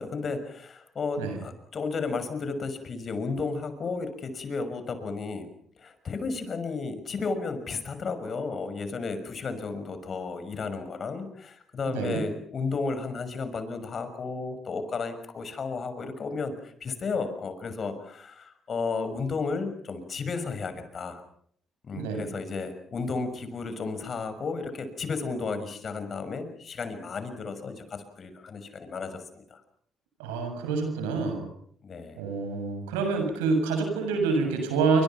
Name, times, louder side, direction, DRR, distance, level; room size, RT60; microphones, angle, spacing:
voice 1, 0.0-5.5 5.8-21.2 21.8-29.6 31.8-32.2, left 4 dB, 50° left, 10 dB, 6.2 m, -33 dB
voice 2, 11.9-12.2 22.0-22.3 30.2-31.5 32.2-35.0, right 4 dB, 90° right, 5 dB, 7.2 m, -27 dB
28.5 x 25.0 x 5.9 m, 0.64 s
hypercardioid pair, 55°, 0 cm